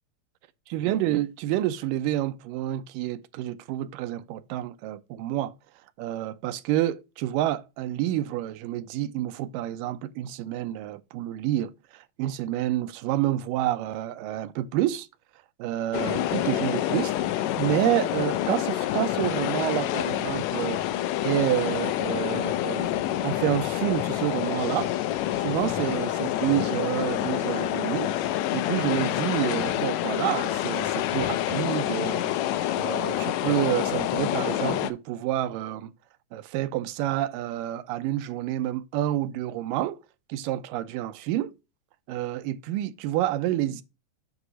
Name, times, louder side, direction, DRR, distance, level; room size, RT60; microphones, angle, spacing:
voice 1, 0.7-5.5 6.0-15.1 15.6-17.2 17.6-20.8 21.2-35.9 36.3-40.0 40.3-41.5 42.1-43.8, right 13 dB, 85° right, 2.2 m, -29 dB
sound 1, 15.9-34.9, left 13 dB, 90° left, 1.6 m, -27 dB
8.0 x 3.0 x 6.1 m
omnidirectional pair, 3.9 m